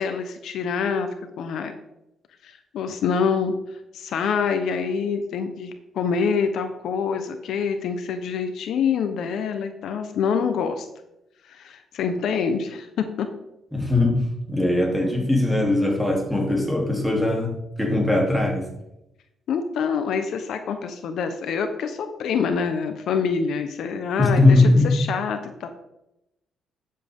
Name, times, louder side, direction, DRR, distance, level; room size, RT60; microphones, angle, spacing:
voice 1, 0.0-1.7 2.4-10.9 11.5-13.3 19.5-25.7, left 6 dB, 75° left, 7 dB, 1.0 m, -26 dB
voice 2, 13.7-14.2 14.5-18.7 24.2-24.9, left 2 dB, ahead, -1 dB, 3.2 m, -20 dB
12.0 x 7.7 x 3.7 m, 0.85 s
cardioid pair, 90°, 0 cm